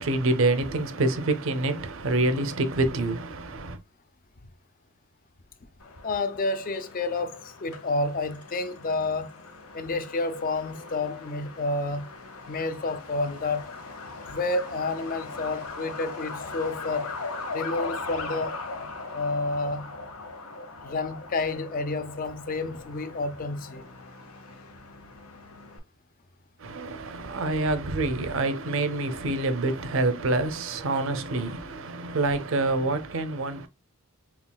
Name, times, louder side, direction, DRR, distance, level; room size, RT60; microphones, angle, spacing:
voice 1, 0.0-3.8 26.6-33.7, right 2 dB, 65° right, 0.6 m, -26 dB
Truck, 5.8-25.8, left 3 dB, 85° left, 0.9 m, -40 dB
voice 2, 6.0-9.5 9.7-12.1 12.5-13.7 14.3-17.2 17.5-18.6 19.1-19.9 20.8-23.8, left 3 dB, 40° left, 0.5 m, -30 dB
5.7 x 2.3 x 2.2 m
head